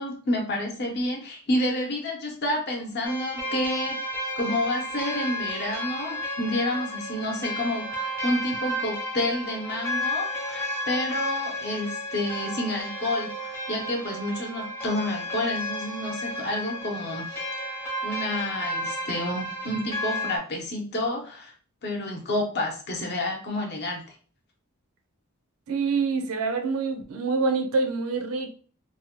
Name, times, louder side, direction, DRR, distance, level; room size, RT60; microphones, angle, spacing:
voice 1, 0.0-17.7 18.0-21.5 21.8-24.0, left 1 dB, 50° left, 1 dB, 0.8 m, -29 dB
sound 1, 3.0-20.4, equal, 10° left, 0.7 m, -32 dB
voice 2, 25.7-28.5, right 4 dB, 70° right, 5 dB, 0.5 m, -26 dB
2.7 x 2.1 x 2.9 m, 0.41 s
head